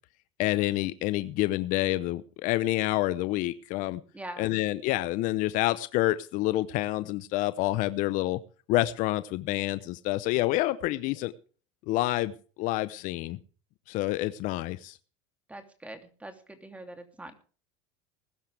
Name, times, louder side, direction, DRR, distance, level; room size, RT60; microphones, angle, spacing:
voice 1, 0.4-4.0 4.4-8.4 8.7-11.3 11.9-13.4 13.9-15.0, left 17 dB, 55° left, 15 dB, 0.9 m, -28 dB
voice 2, 4.1-4.6 15.5-17.4, right 1 dB, 10° right, 7 dB, 3.0 m, -43 dB
20.0 x 12.0 x 3.5 m, 0.38 s
supercardioid pair, 110°, 15 cm